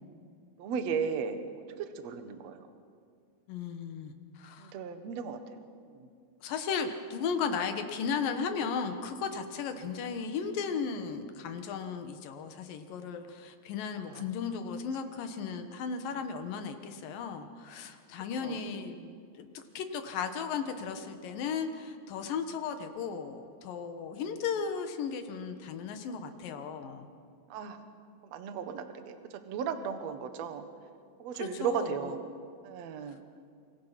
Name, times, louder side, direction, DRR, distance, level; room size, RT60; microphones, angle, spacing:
voice 1, 0.6-1.4 1.8-2.6 4.6-5.4 5.9-6.1 14.1-14.2 18.4-18.6 18.9-19.2 27.5-27.8 28.3-29.2 29.5-30.7 31.2-32.2 32.6-33.2, right 6 dB, 70° right, 8 dB, 1.6 m, -35 dB
voice 2, 3.5-4.7 6.4-19.0 19.4-27.1 31.4-32.1, left 6 dB, 65° left, 7 dB, 2.5 m, -35 dB
27.0 x 24.0 x 5.9 m, 2.3 s
omnidirectional pair, 5.2 m